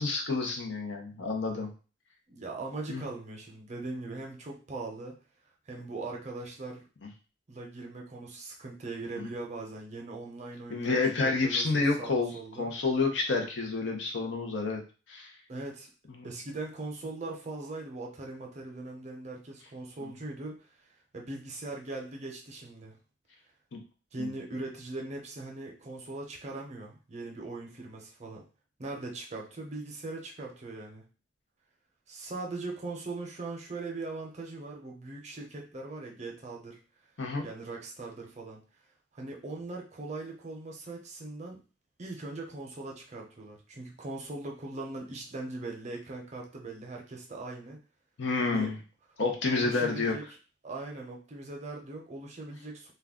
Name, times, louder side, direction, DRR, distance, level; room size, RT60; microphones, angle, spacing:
voice 1, 0.0-1.7 2.9-3.0 9.2-9.3 10.7-14.8 15.1-15.3 16.2-16.3 20.0-20.1 23.7-23.8 24.2-24.3 37.2-37.4 48.2-48.8 49.2-50.1, left 3 dB, 75° left, 2 dB, 0.7 m, -29 dB
voice 2, 2.3-5.2 5.7-6.8 7.5-12.7 15.5-15.9 16.2-20.7 21.1-23.0 24.1-28.4 28.8-31.0 32.1-36.8 37.4-38.6 39.1-41.6 42.0-47.8 48.4-48.7 49.5-50.2 50.6-52.9, right 2 dB, 40° right, 1 dB, 0.6 m, -40 dB
2.3 x 2.2 x 3.5 m, 0.34 s
head